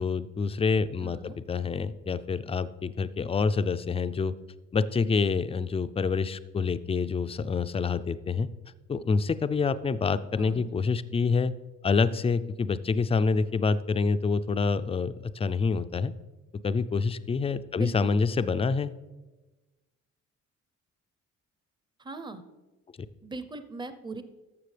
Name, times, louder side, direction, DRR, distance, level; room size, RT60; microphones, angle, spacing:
voice 1, 0.0-4.3 4.7-8.5 8.9-11.5 11.8-16.1 16.6-18.9 23.0-23.1, left 4 dB, 20° left, 13 dB, 0.4 m, -27 dB
voice 2, 1.0-1.4 10.4-10.7 17.7-18.2 22.0-22.4 23.2-24.2, right 3 dB, 15° right, 10 dB, 0.6 m, -40 dB
13.0 x 6.9 x 3.3 m, 1.1 s
cardioid pair, 90°, 30 cm